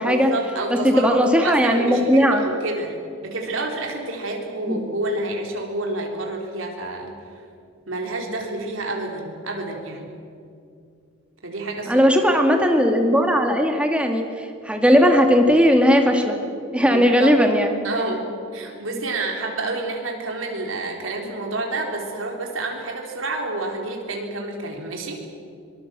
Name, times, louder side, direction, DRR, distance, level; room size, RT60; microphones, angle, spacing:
voice 1, 0.1-3.0 3.2-7.2 7.9-10.1 11.4-12.1 16.8-17.3 17.8-25.3, right 2 dB, 75° right, 1 dB, 3.8 m, -29 dB
voice 2, 0.7-2.5 4.6-4.8 11.9-16.4 16.7-17.8, equal, 5° right, 3 dB, 2.2 m, -17 dB
25.0 x 20.0 x 7.6 m, 2.4 s
head